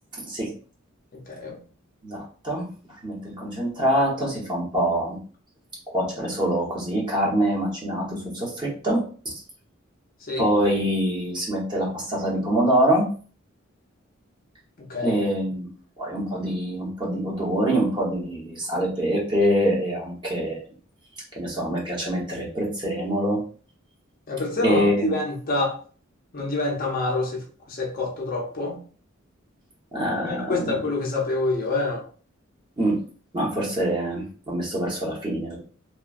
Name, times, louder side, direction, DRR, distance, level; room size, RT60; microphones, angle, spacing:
voice 1, 1.1-1.6 10.3-10.5 14.9-15.2 24.3-25.8 26.3-28.8 30.2-32.0, left 2 dB, 45° left, 0 dB, 0.6 m, -27 dB
voice 2, 2.0-2.7 3.0-5.2 5.9-9.3 10.4-13.1 15.0-15.7 16.0-20.6 21.4-23.4 24.6-25.1 29.9-30.8 32.8-33.0 33.3-35.6, right 1 dB, 25° right, -3 dB, 0.9 m, -25 dB
3.0 x 2.2 x 2.4 m, 0.40 s
head